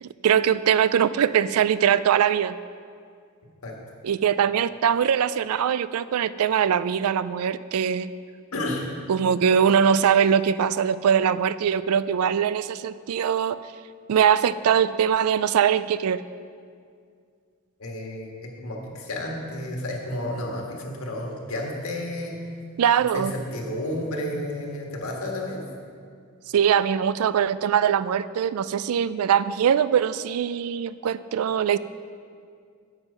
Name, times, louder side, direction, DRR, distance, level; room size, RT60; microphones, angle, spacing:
voice 1, 0.0-2.5 4.0-8.1 9.1-13.6 14.1-16.2 22.8-23.3 26.5-31.8, right 8 dB, 80° right, 16 dB, 0.3 m, -22 dB
voice 2, 8.5-8.9 17.8-22.4 23.1-25.6, left 1 dB, 80° left, 0 dB, 1.7 m, -31 dB
9.0 x 7.8 x 5.5 m, 2.2 s
head